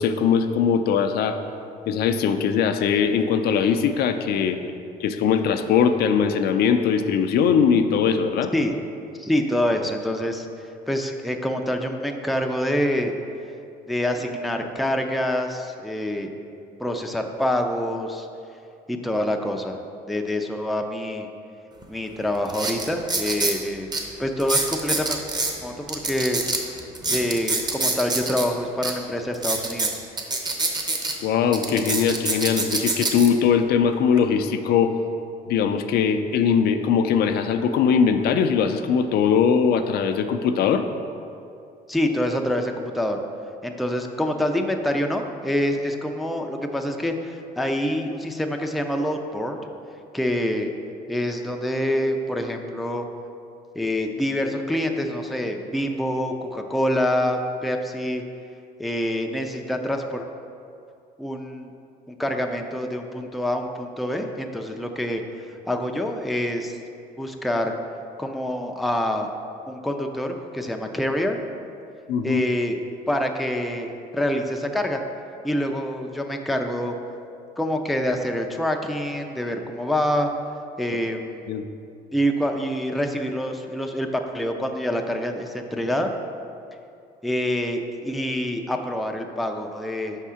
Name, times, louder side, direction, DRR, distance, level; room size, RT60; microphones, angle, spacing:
voice 1, 0.0-1.4 1.9-4.6 5.0-8.5 31.2-34.9 35.5-40.8 72.1-72.4 81.5-81.6, left 7 dB, 70° left, 7 dB, 0.4 m, -21 dB
voice 2, 9.2-10.5 10.9-13.1 13.9-16.3 16.8-18.3 18.9-19.8 20.1-21.3 21.9-23.9 24.2-25.2 25.6-26.4 27.1-30.0 41.9-43.2 43.6-49.6 50.1-50.7 51.1-53.1 53.8-58.2 58.8-60.2 61.2-61.7 62.1-66.8 67.2-67.7 68.2-69.3 69.7-71.4 72.2-72.8 73.1-75.0 75.4-77.0 77.6-80.3 80.8-81.5 82.1-86.1 87.2-90.2, left 1 dB, ahead, 3 dB, 0.4 m, -26 dB
sound 1, 21.8-21.9 22.5-23.6 23.9-24.0 24.4-25.5 25.9-28.5 28.8-28.9 29.3-31.1 31.5-33.3 33.9-34.2, right 3 dB, 25° right, 0.7 m, -25 dB
5.4 x 3.6 x 5.6 m, 2.5 s
cardioid pair, 110°, 17 cm